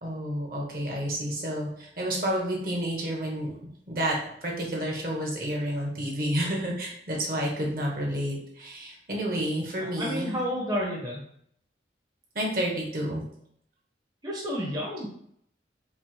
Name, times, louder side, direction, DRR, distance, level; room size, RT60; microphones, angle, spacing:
voice 1, 0.0-3.5 3.9-10.6 12.3-13.2, equal, 55° right, -1 dB, 1.1 m, -30 dB
voice 2, 9.8-11.2 14.2-15.1, equal, 20° right, -4 dB, 0.7 m, -31 dB
5.2 x 2.0 x 3.0 m, 0.68 s
head